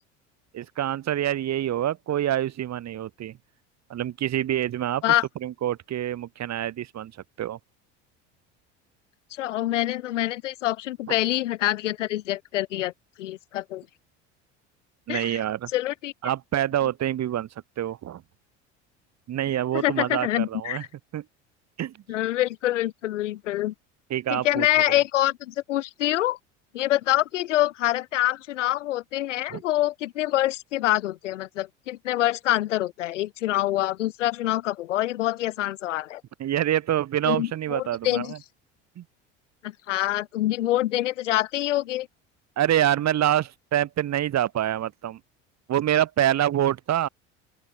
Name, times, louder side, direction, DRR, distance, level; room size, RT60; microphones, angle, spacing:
voice 1, 0.5-3.4 3.9-5.0 5.4-7.1 7.4-7.6 15.1-15.7 16.2-17.5 17.8-18.2 19.3-20.8 21.1-21.2 21.8-22.0 24.1-25.0 29.5-29.6 36.4-38.4 39.0-39.1 42.6-45.2 45.7-47.1, right 11 dB, 50° right, 4.3 m, -26 dB
voice 2, 9.3-12.9 13.2-13.8 15.1-15.4 15.7-16.1 19.7-20.8 22.1-23.7 24.3-26.4 26.7-36.2 37.3-38.3 39.6-42.1, left 14 dB, 85° left, 2.2 m, -26 dB
open air
hypercardioid pair, 75°, 36 cm